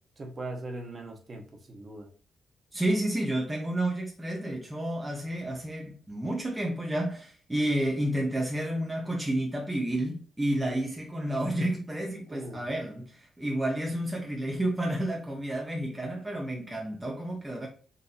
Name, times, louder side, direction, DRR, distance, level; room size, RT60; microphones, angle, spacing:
voice 1, 0.2-2.1 12.3-12.7, right 2 dB, 35° right, 1.0 m, -40 dB
voice 2, 2.7-17.7, right 1 dB, 10° right, 0.6 m, -30 dB
4.0 x 2.6 x 2.3 m
cardioid pair, 115°, 0 cm